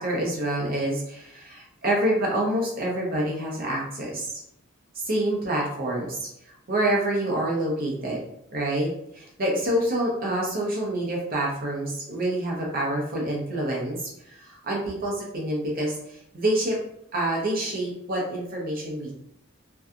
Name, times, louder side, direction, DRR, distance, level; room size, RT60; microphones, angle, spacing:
voice 1, 0.0-4.3 4.9-6.3 6.7-8.2 8.5-16.8 17.1-19.1, right 1 dB, 45° right, -2 dB, 0.7 m, -27 dB
2.7 x 2.3 x 2.4 m, 0.76 s
head